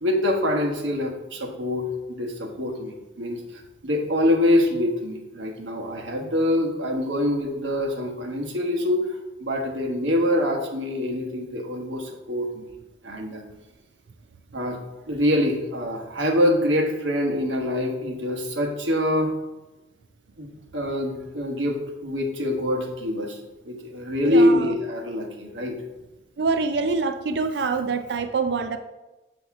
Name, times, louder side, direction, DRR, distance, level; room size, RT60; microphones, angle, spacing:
voice 1, 0.0-12.7 13.0-13.4 14.5-14.8 15.1-19.3 20.4-23.4 23.6-25.8, left 1 dB, 90° right, 2 dB, 1.2 m, -25 dB
voice 2, 24.2-24.7 26.4-28.8, right 4 dB, 65° right, 7 dB, 0.4 m, -25 dB
7.9 x 3.0 x 5.9 m, 1.1 s
head